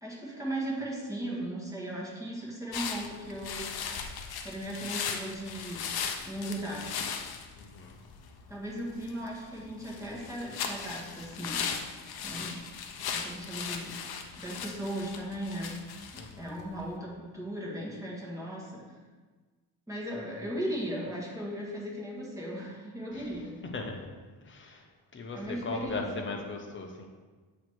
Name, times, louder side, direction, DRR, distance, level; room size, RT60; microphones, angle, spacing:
voice 1, 0.0-3.7 4.4-5.8 6.2-6.9 8.5-11.7 12.2-12.6 13.1-14.0 14.4-15.8 16.4-18.8 19.9-23.6 25.3-26.3, right 1 dB, 5° right, -4 dB, 1.6 m, -37 dB
sound 1, 2.7-16.9, left 6 dB, 60° left, 0.7 m, -38 dB
voice 2, 7.6-8.0 16.1-16.6 23.1-23.3 23.7-24.1 24.4-24.9 25.1-27.1, left 3 dB, 25° left, 2 dB, 0.9 m, -38 dB
8.0 x 3.1 x 4.6 m, 1.4 s
cardioid pair, 115°, 43 cm